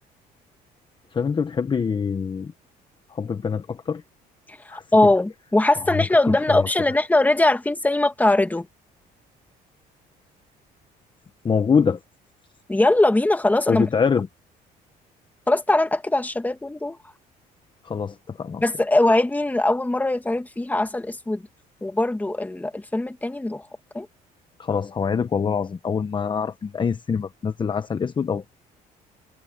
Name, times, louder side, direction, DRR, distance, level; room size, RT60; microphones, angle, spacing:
voice 1, 1.1-2.5 3.1-4.0 4.7-4.8 6.5-6.6 11.4-12.0 13.7-14.3 17.8-18.6 24.6-28.5, left 6 dB, 30° left, 1.0 m, -24 dB
voice 2, 4.5-8.7 12.7-13.9 15.5-17.0 18.6-21.4 21.8-23.7 23.9-24.1, left 2 dB, 10° left, 2.0 m, -21 dB
cardioid pair, 110°, 17 cm